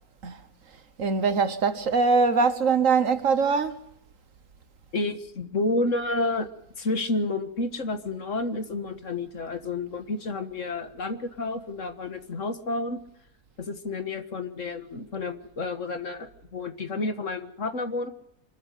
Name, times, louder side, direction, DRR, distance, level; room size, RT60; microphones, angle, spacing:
voice 1, 1.0-3.7, right 4 dB, 60° right, 1.6 m, -22 dB
voice 2, 4.9-6.5 6.8-13.0 13.6-18.1, left 2 dB, 55° left, 1.9 m, -30 dB
25.5 x 13.5 x 9.1 m
omnidirectional pair, 1.6 m